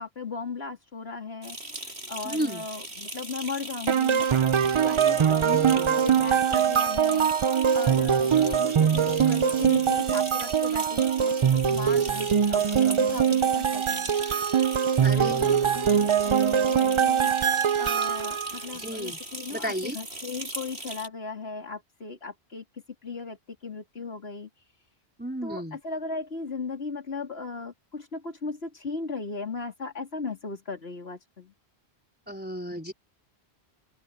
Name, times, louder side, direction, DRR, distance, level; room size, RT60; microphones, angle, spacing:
voice 1, 0.0-4.3 4.8-14.2 15.0-24.8 25.4-31.5, left 4 dB, 75° left, 3.5 m, -37 dB
sound 1, 1.4-21.1, right 1 dB, 85° right, 7.4 m, -39 dB
voice 2, 2.2-2.7 5.3-5.9 15.0-15.5 18.7-19.2 19.5-20.0 25.2-25.8 32.3-32.9, equal, 10° right, 3.9 m, -33 dB
sound 2, 3.9-18.6, right 8 dB, 55° right, 0.3 m, -23 dB
open air
omnidirectional pair, 1.1 m